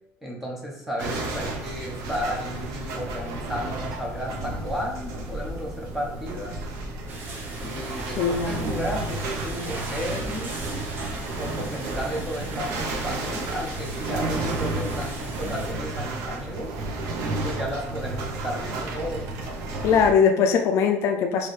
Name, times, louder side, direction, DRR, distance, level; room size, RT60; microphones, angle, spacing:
voice 1, 0.2-6.6 7.6-10.7 11.4-16.8 17.3-19.3, equal, 5° right, -2 dB, 0.8 m, -33 dB
sound 1, 1.0-20.1, right 2 dB, 75° right, 0.7 m, -32 dB
sound 2, 7.1-15.7, right 2 dB, 35° right, 0.8 m, -38 dB
voice 2, 8.2-8.7 19.8-21.5, left 6 dB, 55° left, 5 dB, 0.4 m, -21 dB
4.5 x 3.2 x 3.1 m, 0.90 s
cardioid pair, 175°, 6 cm